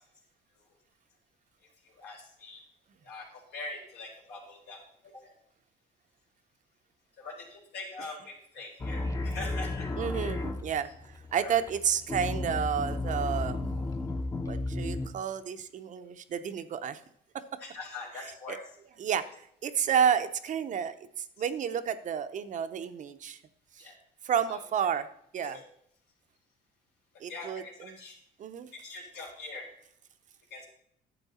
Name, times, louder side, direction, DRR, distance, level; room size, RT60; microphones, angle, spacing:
voice 1, 1.8-2.6 3.0-4.8 5.1-5.3 7.2-9.9 10.8-10.9 11.4-11.7 17.6-18.6 19.1-19.2 23.8-24.0 24.5-24.6 25.4-25.6 27.3-28.2 28.7-29.7 30.5-30.7, left 3 dB, 80° left, -1 dB, 3.6 m, -43 dB
sound 1, 8.8-15.1, left 2 dB, 20° left, 0.9 m, -33 dB
voice 2, 10.0-10.9 11.3-13.6 14.5-17.0 18.5-18.6 19.0-19.2 19.6-23.4 23.8-23.9 24.2-25.1 25.3-25.6 27.2-27.9 28.4-28.7, right 8 dB, 50° right, 10 dB, 0.7 m, -30 dB
11.0 x 7.7 x 4.2 m, 0.70 s
cardioid pair, 110°, 17 cm